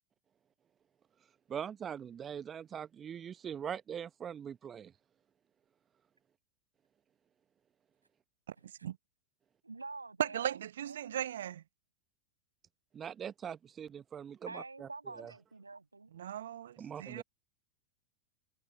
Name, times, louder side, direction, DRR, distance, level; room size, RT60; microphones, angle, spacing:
voice 1, 1.5-4.9 12.9-14.9 15.2-15.3 16.8-17.2, right 8 dB, 25° right, 1.2 m, -42 dB
voice 2, 9.6-11.3 14.4-16.1, right 3 dB, 85° right, 7.7 m, -47 dB
voice 3, 10.2-11.6 16.1-17.2, right 10 dB, 65° right, 0.8 m, -37 dB
figure-of-eight pair, 95°, 0 cm